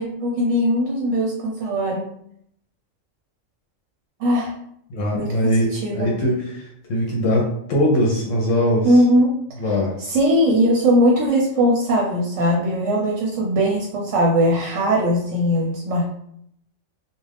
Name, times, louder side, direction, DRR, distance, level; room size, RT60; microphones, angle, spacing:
voice 1, 0.0-2.1 4.2-4.5 5.1-6.1 8.8-9.4 10.0-16.1, equal, 70° right, -2 dB, 0.9 m, -20 dB
voice 2, 4.9-9.0 9.6-9.9, equal, 70° left, -2 dB, 1.0 m, -21 dB
2.4 x 2.3 x 3.3 m, 0.73 s
omnidirectional pair, 1.4 m